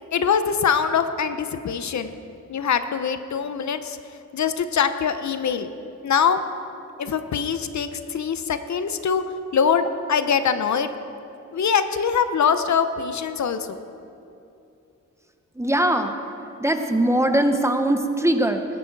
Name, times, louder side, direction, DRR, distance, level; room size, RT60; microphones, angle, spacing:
voice 1, 0.1-2.1 2.5-4.0 4.3-5.7 6.0-6.4 7.0-9.2 9.5-10.9 11.5-13.8, left 7 dB, 70° left, 10 dB, 0.7 m, -23 dB
voice 2, 15.5-16.2 16.6-18.6, right 1 dB, 10° right, 6 dB, 0.8 m, -21 dB
18.5 x 11.0 x 4.6 m, 2.7 s
wide cardioid pair, 130°, 30 cm